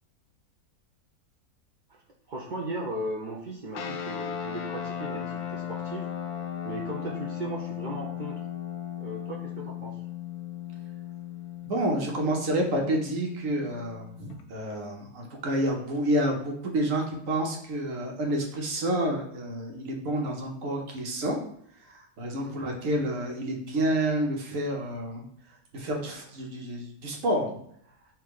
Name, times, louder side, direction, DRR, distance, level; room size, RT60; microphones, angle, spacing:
voice 1, 2.3-6.1 6.6-8.4 9.0-10.0 22.2-22.6, right 1 dB, 75° right, -3 dB, 0.4 m, -37 dB
sound 1, 3.7-14.4, left 9 dB, 75° left, 1.0 m, -37 dB
voice 2, 11.6-21.4 21.9-25.2 25.7-27.5, right 1 dB, 60° right, 1 dB, 1.3 m, -29 dB
3.6 x 2.9 x 4.8 m, 0.66 s
omnidirectional pair, 1.6 m